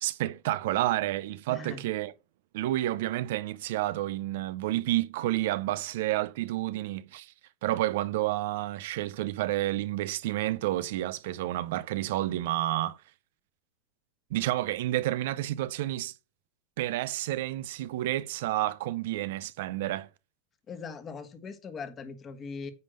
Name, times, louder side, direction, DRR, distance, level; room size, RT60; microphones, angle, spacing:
voice 1, 0.0-2.1 2.5-7.3 7.6-13.0 14.3-16.1 16.8-20.1, right 15 dB, 70° right, 0.5 m, -30 dB
voice 2, 1.5-1.8 20.7-22.7, left 5 dB, 25° left, 1.4 m, -40 dB
9.5 x 3.6 x 6.4 m
supercardioid pair, 145°, 0 cm